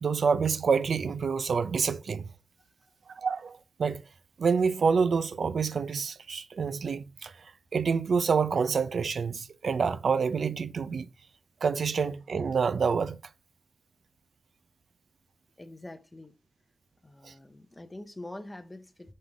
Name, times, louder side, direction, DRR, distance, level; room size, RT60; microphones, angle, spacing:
voice 1, 0.0-2.3 3.1-4.0 4.4-11.1 11.6-13.2 17.2-17.3, right 5 dB, 60° right, 0.5 m, -27 dB
voice 2, 15.6-16.4 17.0-19.1, left 1 dB, 15° left, 0.7 m, -45 dB
6.5 x 3.8 x 4.6 m
wide cardioid pair, 165°, 0 cm